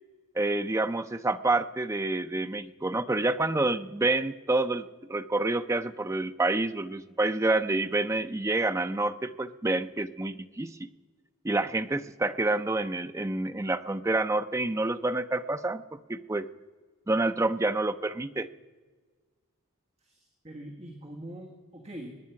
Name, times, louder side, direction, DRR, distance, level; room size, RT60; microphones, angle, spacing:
voice 1, 0.4-10.8 11.4-16.5 17.1-18.5, right 2 dB, 15° right, 10 dB, 0.4 m, -28 dB
voice 2, 20.0-22.1, right 1 dB, 30° right, 0 dB, 1.6 m, -43 dB
21.5 x 9.7 x 5.8 m, 1.5 s
head